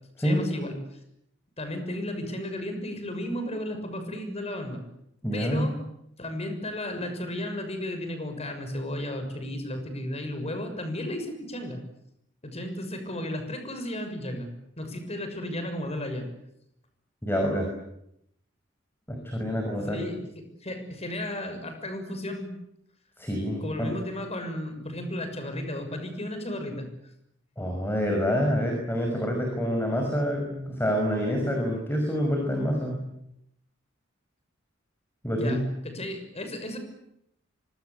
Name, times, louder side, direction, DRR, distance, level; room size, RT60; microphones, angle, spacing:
voice 1, 0.2-0.8 1.6-4.8 5.3-5.8 6.2-11.8 12.4-14.5 14.8-16.3 19.8-20.2 20.6-22.5 23.6-26.9 35.4-36.8, left 1 dB, 35° left, 7 dB, 6.6 m, -34 dB
voice 2, 5.2-5.7 17.2-17.7 19.1-20.0 23.2-23.9 27.6-33.0 35.2-35.6, equal, 10° left, 2 dB, 6.1 m, -27 dB
27.5 x 25.5 x 8.4 m, 0.78 s
head